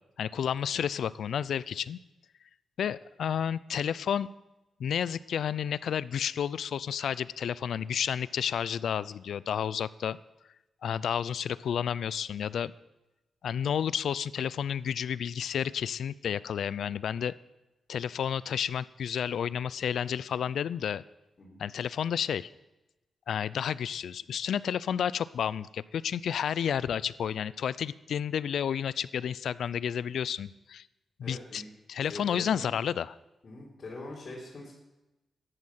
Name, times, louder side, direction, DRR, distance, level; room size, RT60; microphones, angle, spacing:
voice 1, 0.2-2.0 2.8-4.3 4.8-10.2 10.8-12.7 13.4-17.3 17.9-21.0 21.6-22.5 23.3-30.9 31.2-31.6 31.9-33.2, left 8 dB, 80° left, 19 dB, 0.4 m, -31 dB
voice 2, 31.2-31.7 32.1-32.7 33.4-34.7, left 2 dB, 45° left, -5 dB, 3.9 m, -43 dB
14.0 x 11.0 x 5.7 m, 1.0 s
cardioid pair, 100°, 0 cm